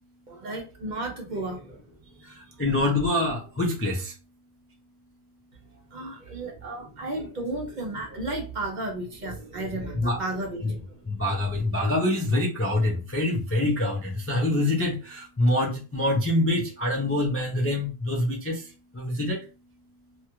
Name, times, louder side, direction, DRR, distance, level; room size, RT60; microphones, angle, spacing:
voice 1, 0.3-2.6 5.9-10.8, right 2 dB, 50° right, 1 dB, 0.8 m, -34 dB
voice 2, 2.6-4.0 10.0-10.2 10.6-10.7 11.2-18.6 19.0-19.4, left 1 dB, 20° left, -2 dB, 0.4 m, -25 dB
2.9 x 2.4 x 2.8 m, 0.33 s
omnidirectional pair, 1.1 m